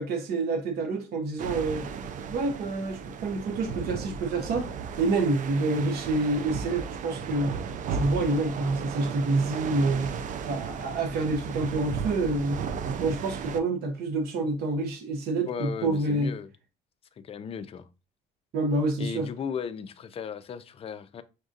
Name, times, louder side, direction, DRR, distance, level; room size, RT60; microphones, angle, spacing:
voice 1, 0.0-1.8 2.3-4.7 5.0-7.6 7.9-10.1 10.5-12.6 13.0-16.3 18.5-19.3, right 2 dB, 70° right, 0.9 m, -27 dB
sound 1, 1.4-13.6, right 6 dB, 50° right, 0.5 m, -35 dB
voice 2, 15.4-16.5 17.2-17.9 19.0-21.2, left 7 dB, 35° left, 0.4 m, -36 dB
5.8 x 2.6 x 2.4 m
cardioid pair, 110°, 17 cm